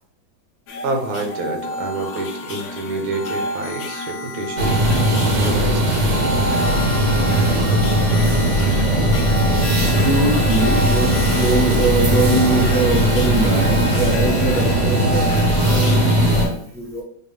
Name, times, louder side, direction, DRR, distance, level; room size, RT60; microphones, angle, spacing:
sound 1, 0.7-16.5, left 2 dB, 90° left, 0.6 m, -29 dB
voice 1, 0.8-4.8 5.3-6.0, right 2 dB, 85° right, 3 dB, 1.6 m, -27 dB
sound 2, 4.6-16.5, right 1 dB, 60° right, 0.7 m, -18 dB
voice 2, 9.1-9.5 9.8-15.4 15.7-17.0, right 2 dB, 30° left, -5 dB, 0.8 m, -22 dB
5.4 x 2.2 x 3.2 m, 0.65 s
omnidirectional pair, 2.1 m